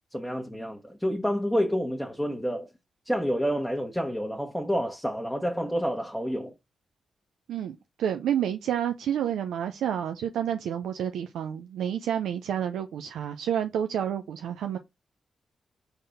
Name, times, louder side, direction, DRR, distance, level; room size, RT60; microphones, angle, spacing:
voice 1, 0.1-2.7 3.0-6.5, equal, ahead, 1.0 m, -29 dB
voice 2, 7.5-14.8, right 9 dB, 80° right, 0.4 m, -29 dB
3.9 x 3.5 x 3.9 m
supercardioid pair, 40°, 0 cm